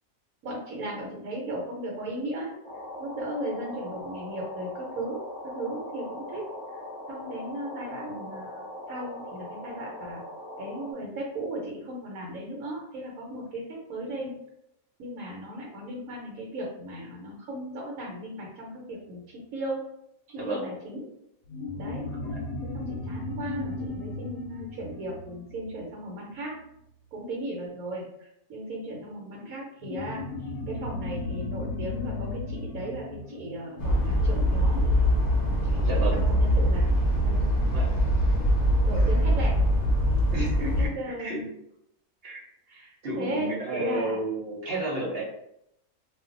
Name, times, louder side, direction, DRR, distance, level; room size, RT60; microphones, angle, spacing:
voice 1, 0.4-2.6 3.0-6.5 6.7-6.8 7.1-10.2 10.6-14.3 15.0-19.8 20.3-21.1 21.7-22.1 22.6-26.6 27.1-34.9 35.6-36.9 37.2-37.5 38.8-39.6 40.9-41.5 42.7-44.2, right 1 dB, 75° right, -3 dB, 1.2 m, -36 dB
sound 1, 2.6-10.9, left 1 dB, 20° left, 1.0 m, -40 dB
voice 2, 20.4-20.7 22.2-22.4 35.8-36.2 37.7-37.8 40.3-41.4 42.2-42.4 43.0-45.2, right 1 dB, 45° right, -4 dB, 1.0 m, -32 dB
sound 2, 21.5-26.4 29.8-34.7, left 2 dB, 80° left, 1.0 m, -36 dB
sound 3, 33.8-40.9, equal, 50° left, 0.8 m, -23 dB
2.6 x 2.4 x 3.6 m, 0.78 s
omnidirectional pair, 1.5 m